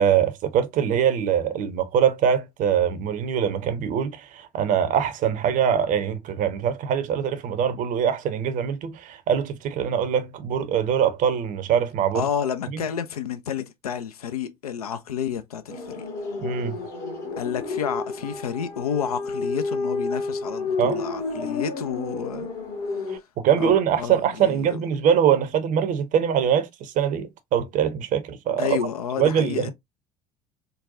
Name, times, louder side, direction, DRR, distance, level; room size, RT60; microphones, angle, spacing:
voice 1, 0.0-12.3 12.7-12.8 16.4-16.8 20.8-21.0 23.1-28.8 29.2-29.7, right 8 dB, 45° right, 0.6 m, -23 dB
voice 2, 12.1-16.1 17.4-22.5 22.9-23.2 23.6-24.8 28.6-29.7, left 8 dB, 80° left, 0.5 m, -30 dB
sound 1, 15.7-23.2, left 3 dB, 55° left, 1.3 m, -30 dB
3.9 x 2.2 x 2.5 m
figure-of-eight pair, 60°, 19 cm